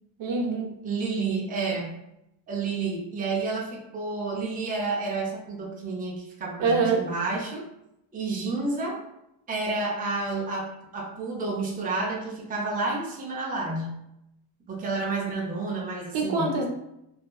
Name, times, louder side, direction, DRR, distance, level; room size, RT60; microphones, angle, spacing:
voice 1, 0.2-0.8 6.6-7.0 16.1-16.7, right 4 dB, 80° right, 1 dB, 0.7 m, -25 dB
voice 2, 0.8-2.0 2.5-7.6 8.1-9.0 9.5-13.9 14.7-16.6, right 3 dB, 20° right, -2 dB, 0.4 m, -30 dB
2.6 x 2.4 x 2.3 m, 0.83 s
wide cardioid pair, 145°, 48 cm